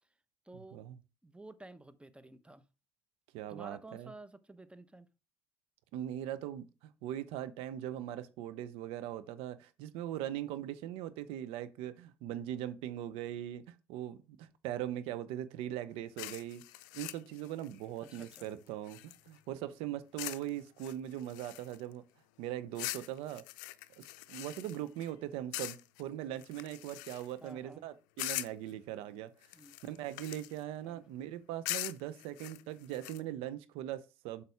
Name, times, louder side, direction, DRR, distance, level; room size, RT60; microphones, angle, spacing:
voice 1, 0.4-0.8 1.2-2.6 3.5-5.1 18.0-18.5 27.4-27.9 29.5-29.7 30.8-31.1, right 2 dB, 10° right, 1.1 m, -52 dB
voice 2, 3.3-4.1 5.9-16.6 16.9-22.0 22.4-23.4 24.0-29.3 29.8-34.4, right 12 dB, 70° right, 0.8 m, -40 dB
sound 1, 16.2-19.4 20.2-20.5 20.8-21.9 22.8-25.1 25.5-26.0 26.4-27.5 28.2-28.7 29.4-30.6 31.7-33.2, left 18 dB, 75° left, 0.5 m, -42 dB
7.8 x 5.9 x 3.5 m
hypercardioid pair, 55°, 10 cm